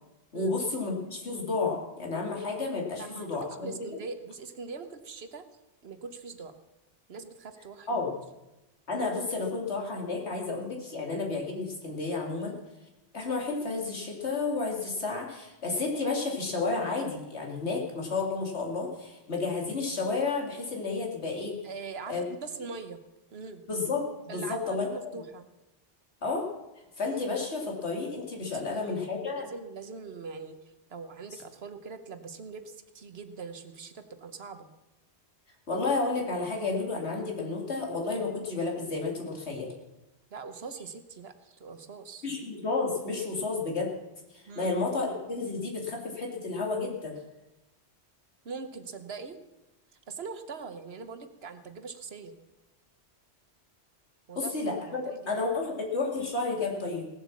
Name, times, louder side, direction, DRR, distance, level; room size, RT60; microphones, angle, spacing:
voice 1, 0.3-3.7 7.9-8.1 8.9-12.5 13.1-21.6 22.1-22.3 23.7-24.9 26.2-26.4 27.0-29.5 35.7-39.7 42.2-43.9 44.3-47.1 54.4-57.1, left 3 dB, 70° left, 0 dB, 2.7 m, -31 dB
voice 2, 3.0-5.4 5.8-6.6 7.1-8.0 21.6-23.0 23.3-23.6 24.3-25.4 28.5-28.8 29.4-30.6 30.9-34.7 40.3-42.3 44.5-44.7 48.4-49.4 50.1-52.4 54.3-55.5, right 4 dB, 65° right, 10 dB, 1.2 m, -42 dB
17.0 x 7.9 x 7.2 m, 0.99 s
omnidirectional pair, 1.2 m